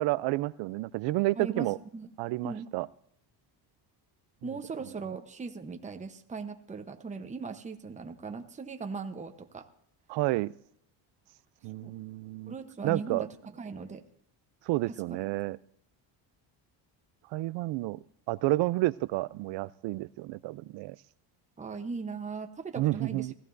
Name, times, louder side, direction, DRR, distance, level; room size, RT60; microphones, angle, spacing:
voice 1, 0.0-1.8 2.2-2.9 10.1-10.5 11.6-12.5 12.8-13.2 14.7-15.6 17.3-21.0 22.8-23.3, right 19 dB, 70° right, 0.6 m, -30 dB
voice 2, 1.4-2.1 2.4-2.7 4.4-9.7 11.8-12.0 12.5-14.0 14.9-15.2 21.6-23.3, right 4 dB, 15° right, 0.9 m, -39 dB
19.5 x 15.0 x 2.6 m
cardioid pair, 120°, 44 cm